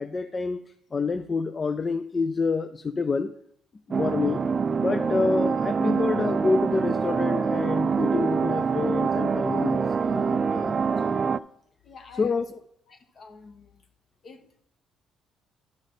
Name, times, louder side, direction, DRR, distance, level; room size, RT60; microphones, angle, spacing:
voice 1, 0.0-3.3 3.9-4.4 4.8-11.0 12.1-12.4, left 4 dB, 35° left, 0.4 m, -28 dB
sound 1, 3.9-11.4, right 5 dB, 35° right, 0.3 m, -25 dB
voice 2, 11.8-12.4 12.9-13.8 14.2-14.7, left 5 dB, 50° left, 1.2 m, -47 dB
11.5 x 5.4 x 3.8 m
cardioid pair, 95°, 0 cm